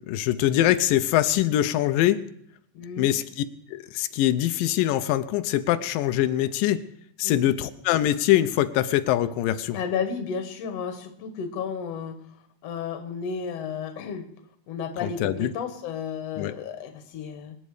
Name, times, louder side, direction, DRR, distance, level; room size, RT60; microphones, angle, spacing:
voice 1, 0.1-2.2 3.0-6.8 7.2-9.8 15.0-15.5 16.4-16.5, left 13 dB, 90° left, 11 dB, 2.4 m, -23 dB
voice 2, 2.7-3.1 7.2-7.4 9.7-12.2 12.6-14.3 14.7-17.6, left 6 dB, 55° left, 8 dB, 2.3 m, -32 dB
26.0 x 9.1 x 4.9 m, 0.70 s
omnidirectional pair, 3.9 m